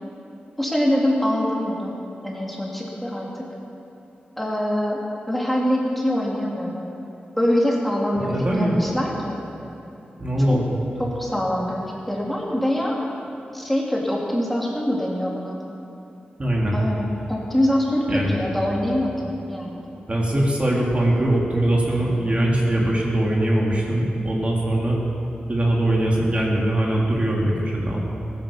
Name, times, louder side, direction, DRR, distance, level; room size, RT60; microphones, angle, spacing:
voice 1, 0.6-3.5 4.4-6.9 7.4-9.4 10.5-10.6 11.0-13.0 13.5-15.6 16.7-19.8, left 1 dB, 5° left, -3 dB, 3.1 m, -24 dB
voice 2, 8.2-8.8 10.2-10.8 16.4-16.7 18.1-18.4 20.1-25.0 25.5-28.0, right 1 dB, 35° right, -3 dB, 2.9 m, -21 dB
16.0 x 10.5 x 7.3 m, 2.9 s
cardioid pair, 60°, 3 cm